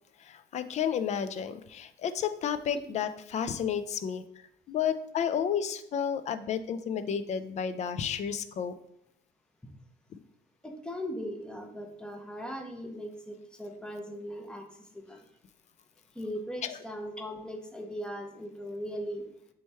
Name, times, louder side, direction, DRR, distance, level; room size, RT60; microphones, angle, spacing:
voice 1, 0.2-4.2 4.7-8.7 16.6-16.8, left 8 dB, 45° left, 11 dB, 0.4 m, -31 dB
voice 2, 10.6-14.7 14.9-15.2 16.2-19.3, equal, 5° left, 3 dB, 0.6 m, -39 dB
3.4 x 3.0 x 4.3 m, 0.74 s
cardioid pair, 110°, 17 cm